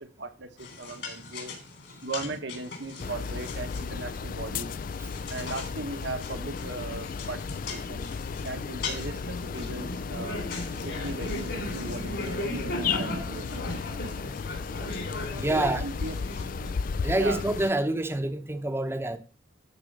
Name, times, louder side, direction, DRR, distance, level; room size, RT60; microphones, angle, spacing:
voice 1, 0.0-1.5 2.0-4.7 5.3-7.4 7.7-8.1 8.4-13.5 15.5-16.2 17.2-17.4, right 3 dB, 65° right, 1.3 m, -38 dB
sound 1, 0.6-16.7, left 1 dB, 60° left, 3.5 m, -38 dB
sound 2, 3.0-17.7, left 5 dB, 45° left, 0.4 m, -34 dB
voice 2, 15.3-15.9 17.0-19.2, right 1 dB, 15° right, 0.9 m, -27 dB
13.0 x 4.5 x 6.5 m
head